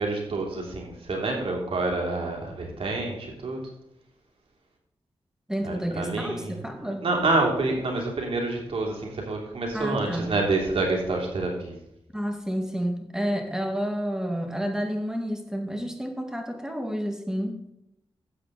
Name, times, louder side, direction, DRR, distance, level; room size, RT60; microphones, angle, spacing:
voice 1, 0.0-3.6 5.6-11.8, right 2 dB, 65° right, 0 dB, 3.2 m, -28 dB
voice 2, 5.5-7.1 9.7-10.3 12.1-17.7, equal, 5° right, 4 dB, 2.2 m, -30 dB
13.0 x 8.3 x 4.2 m, 0.79 s
cardioid pair, 70°, 10 cm